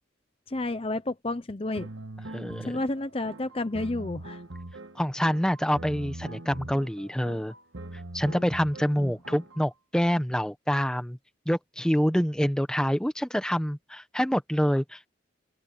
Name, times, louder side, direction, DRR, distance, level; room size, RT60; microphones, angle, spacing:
voice 1, 0.5-1.9 2.6-4.4 9.0-9.1, left 2 dB, 30° left, 0.8 m, -31 dB
sound 1, 1.7-9.7, right 1 dB, 90° right, 1.8 m, -42 dB
voice 2, 2.3-2.8 4.9-7.5 8.1-11.2 11.5-15.1, equal, 5° left, 1.1 m, -26 dB
open air
head